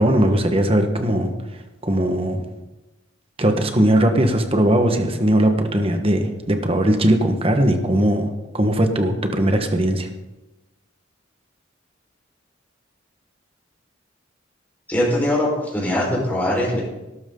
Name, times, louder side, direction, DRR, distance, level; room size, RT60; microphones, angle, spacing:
voice 1, 0.0-1.3 1.8-2.4 3.4-8.3 8.5-10.1, right 1 dB, 30° right, 6 dB, 1.4 m, -19 dB
voice 2, 14.9-16.8, left 1 dB, 10° left, -4 dB, 4.6 m, -21 dB
18.5 x 12.5 x 3.9 m, 1.0 s
head